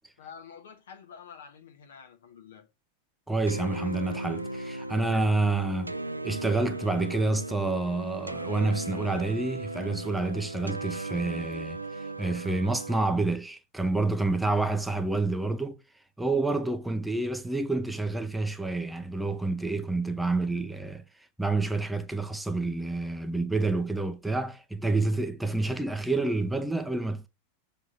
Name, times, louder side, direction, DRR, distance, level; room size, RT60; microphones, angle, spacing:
voice 1, 0.2-2.7, left 7 dB, 65° left, 1.5 m, -48 dB
voice 2, 3.3-5.9 6.2-15.8 16.2-21.0 21.4-27.3, right 2 dB, 5° right, 0.7 m, -28 dB
sound 1, 3.5-13.1, right 2 dB, 85° right, 0.4 m, -36 dB
7.2 x 3.5 x 5.9 m
figure-of-eight pair, 90°, 0 cm